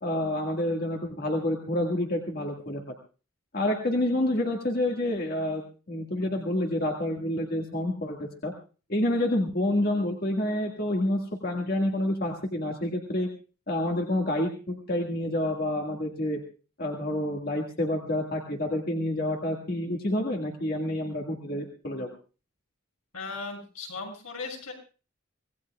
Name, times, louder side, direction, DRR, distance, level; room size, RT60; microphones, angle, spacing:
voice 1, 0.0-2.8 3.5-5.6 5.9-8.5 8.9-13.3 13.7-16.4 16.8-22.1, left 1 dB, 45° left, 1 dB, 1.8 m, -28 dB
voice 2, 23.1-24.7, left 4 dB, 80° left, 1 dB, 6.5 m, -37 dB
25.5 x 18.0 x 2.4 m, 0.36 s
head